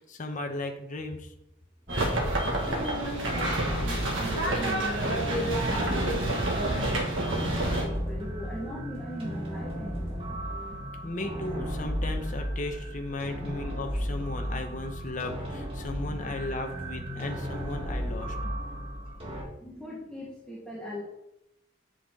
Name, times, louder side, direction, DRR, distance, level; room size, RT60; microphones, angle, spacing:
voice 1, 0.0-1.3 11.0-18.4, left 2 dB, 40° left, 4 dB, 0.8 m, -36 dB
sound 1, 1.9-19.4, equal, 30° right, 1.9 m, -35 dB
sound 2, 1.9-7.9, right 1 dB, 85° right, 1.7 m, -28 dB
voice 2, 2.6-10.7 11.0-11.1 13.3-13.5 14.5-14.7 17.1-17.2 18.4-18.5 19.6-21.0, left 1 dB, 5° left, -6 dB, 1.3 m, -40 dB
7.7 x 5.6 x 3.6 m, 0.83 s
head